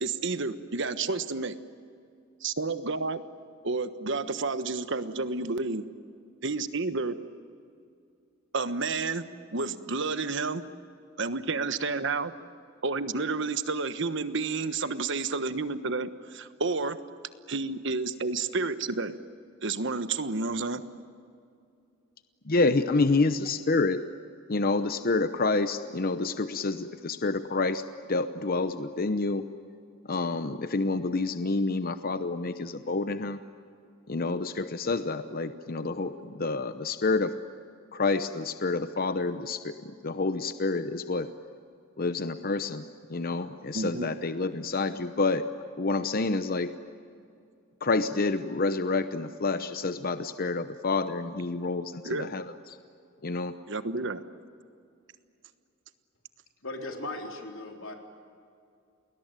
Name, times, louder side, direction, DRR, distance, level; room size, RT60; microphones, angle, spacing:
voice 1, 0.0-1.6 2.4-3.2 3.6-5.8 6.4-7.1 8.5-9.2 9.5-10.6 11.2-12.3 12.8-17.0 17.5-19.1 19.6-20.8 43.7-44.1 52.0-52.3 53.7-54.2, right 3 dB, 65° right, 11 dB, 1.3 m, -30 dB
voice 2, 22.5-24.0 24.5-27.8 28.1-29.4 30.1-33.4 34.1-37.3 37.9-41.3 42.0-42.8 43.1-45.5 45.8-46.7 47.8-52.4 53.2-53.5, left 3 dB, 50° left, 10 dB, 0.9 m, -28 dB
voice 3, 56.6-58.0, left 2 dB, 90° left, 3 dB, 3.8 m, -37 dB
30.0 x 20.5 x 9.1 m, 2.4 s
head